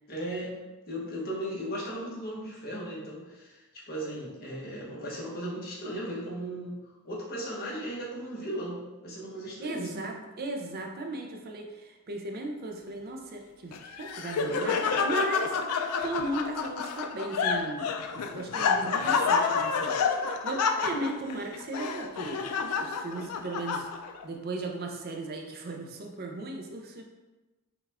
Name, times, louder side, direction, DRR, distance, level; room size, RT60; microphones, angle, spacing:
voice 1, 0.1-0.6 0.9-6.8 7.0-10.1, right 1 dB, 45° left, -5 dB, 1.2 m, -36 dB
voice 2, 9.6-15.6 16.0-22.5 22.8-23.9 24.2-27.0, right 2 dB, 45° right, 2 dB, 0.5 m, -36 dB
Laughter, 13.7-24.2, left 5 dB, 80° left, 0.4 m, -29 dB
5.5 x 2.3 x 3.4 m, 1.1 s
head